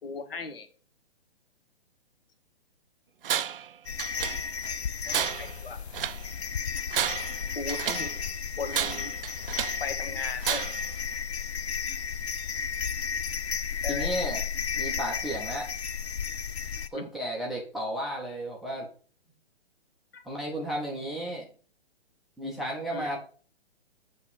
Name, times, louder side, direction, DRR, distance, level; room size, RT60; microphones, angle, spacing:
voice 1, 0.0-0.7 4.8-5.8 7.5-8.1 8.6-9.1 9.8-10.7 13.8-14.1 16.9-17.1 20.1-20.2 22.9-23.1, left 4 dB, 60° left, 9 dB, 1.3 m, -37 dB
Tools, 3.2-3.7 4.0-4.7 5.1-6.3 6.8-8.2 8.7-9.9 10.4-10.9, right 9 dB, 60° right, 0.4 m, -31 dB
sound 1, 3.9-16.9, left 6 dB, 80° left, 0.6 m, -33 dB
voice 2, 13.9-14.4 14.8-15.7 16.9-18.9 20.3-21.5 22.4-23.2, equal, ahead, -3 dB, 0.5 m, -33 dB
8.0 x 3.0 x 6.2 m, 0.42 s
figure-of-eight pair, 125°, 32 cm